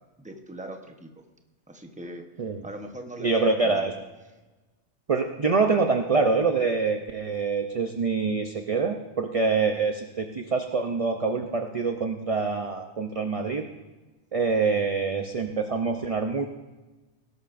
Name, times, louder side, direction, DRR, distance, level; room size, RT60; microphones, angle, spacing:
voice 1, 0.2-1.1 1.7-2.2 2.6-3.3 3.6-3.9, right 1 dB, 5° right, 4 dB, 0.9 m, -40 dB
voice 2, 3.2-3.9 5.1-13.6 14.3-16.5, right 4 dB, 35° right, 5 dB, 0.6 m, -25 dB
18.5 x 12.0 x 2.6 m, 1.2 s
omnidirectional pair, 1.2 m